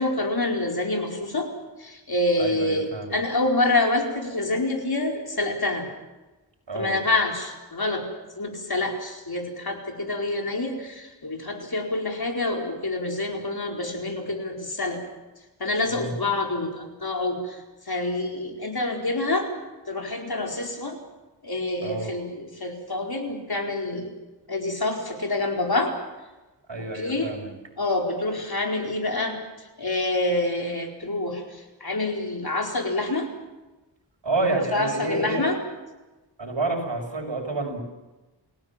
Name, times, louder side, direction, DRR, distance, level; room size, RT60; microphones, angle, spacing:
voice 1, 0.0-1.5 1.8-5.9 6.7-8.1 8.3-15.0 15.6-19.5 19.9-21.0 21.4-24.1 24.5-25.9 26.9-27.4 27.8-33.3 34.7-35.6, left 2 dB, 55° left, 2 dB, 4.7 m, -27 dB
voice 2, 2.4-3.2 6.7-7.0 15.9-16.1 21.8-22.1 26.7-27.5 34.2-35.5 36.4-37.8, right 2 dB, 75° right, 2 dB, 6.2 m, -29 dB
29.5 x 17.5 x 7.4 m, 1.1 s
wide cardioid pair, 70°, 45 cm